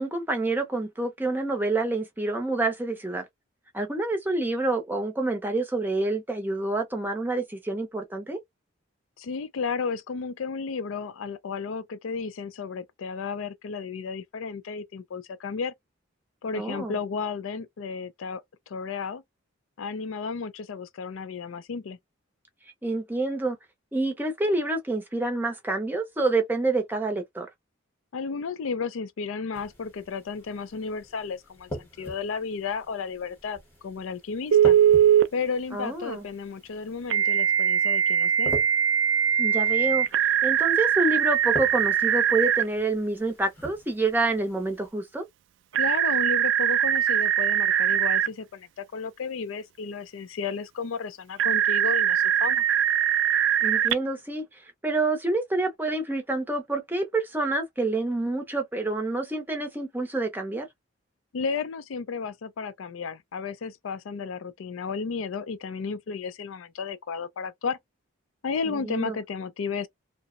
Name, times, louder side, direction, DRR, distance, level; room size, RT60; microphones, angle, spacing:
voice 1, 0.0-3.3 3.7-8.4 16.5-17.0 22.8-23.6 23.9-27.5 35.7-36.3 39.4-40.1 40.4-45.2 53.6-60.7 68.7-69.2, right 2 dB, 10° right, 0.5 m, -28 dB
voice 2, 9.2-15.7 16.4-18.4 18.7-19.2 19.8-22.0 28.1-33.6 33.8-34.8 35.3-38.5 45.8-52.6 61.3-67.8 68.4-69.9, left 5 dB, 85° left, 0.4 m, -33 dB
sound 1, 29.5-44.9, equal, 10° left, 0.9 m, -43 dB
Telephone, 34.5-35.3 37.1-42.6 45.7-48.3 51.4-53.9, right 9 dB, 65° right, 0.3 m, -22 dB
2.7 x 2.0 x 2.4 m
head